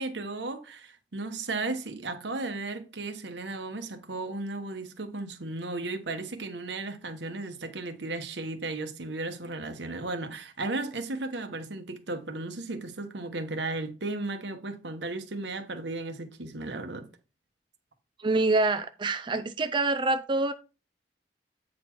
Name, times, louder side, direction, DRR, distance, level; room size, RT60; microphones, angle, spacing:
voice 1, 0.0-17.1, right 2 dB, 80° right, 1.2 m, -35 dB
voice 2, 18.2-20.5, right 2 dB, 25° right, 0.4 m, -26 dB
8.6 x 4.2 x 4.5 m
head